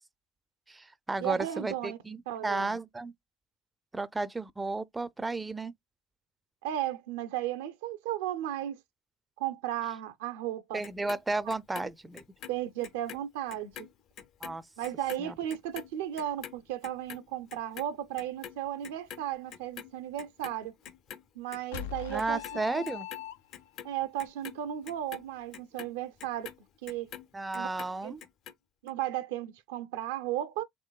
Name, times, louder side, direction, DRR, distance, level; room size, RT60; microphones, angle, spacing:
voice 1, 0.7-3.1 3.9-5.7 10.7-12.2 14.4-14.6 15.2-15.4 22.1-23.1 27.3-28.2, right 3 dB, 15° right, 0.4 m, -33 dB
voice 2, 1.2-2.0 2.3-2.8 6.6-8.8 9.4-10.8 11.5-11.6 12.5-13.9 14.8-20.7 21.3-22.4 22.7-22.8 23.8-26.5 26.8-27.1 27.5-27.7 28.0-28.1 28.8-30.6, right 12 dB, 80° right, 0.5 m, -35 dB
Clock, 10.8-13.2 13.5-19.9 20.2-21.2 21.5-22.5 22.8-27.3 27.5-28.5 28.9-29.0, left 9 dB, 55° left, 0.7 m, -46 dB
sound 1, 21.7-23.8, left 11 dB, 80° left, 0.3 m, -40 dB
3.7 x 3.0 x 2.3 m
hypercardioid pair, 75°, 0 cm